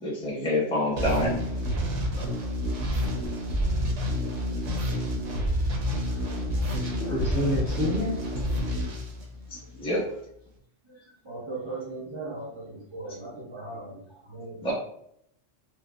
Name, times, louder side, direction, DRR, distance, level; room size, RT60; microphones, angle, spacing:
voice 1, 0.0-1.4 9.7-10.0 14.6-14.7, left 1 dB, 5° left, -4 dB, 0.7 m, -26 dB
sound 1, 1.0-9.8, equal, 70° right, 1.0 m, -29 dB
voice 2, 2.1-2.4 6.1-6.2 6.6-8.2, left 1 dB, 50° left, -6 dB, 1.3 m, -30 dB
voice 3, 11.2-14.0 14.3-14.6, right 2 dB, 30° right, -6 dB, 0.6 m, -38 dB
5.0 x 2.0 x 2.3 m, 0.71 s
omnidirectional pair, 1.3 m